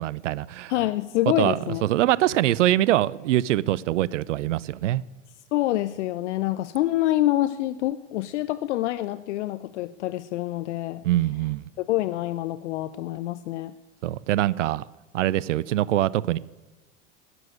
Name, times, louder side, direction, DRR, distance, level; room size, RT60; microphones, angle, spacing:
voice 1, 0.0-0.7 1.4-5.0 11.0-11.6 14.0-14.8 15.1-16.4, right 14 dB, 80° right, 0.5 m, -23 dB
voice 2, 0.7-1.8 5.5-11.0 11.8-13.7, left 15 dB, 70° left, 0.6 m, -26 dB
12.0 x 9.8 x 9.7 m
hypercardioid pair, 85°, 36 cm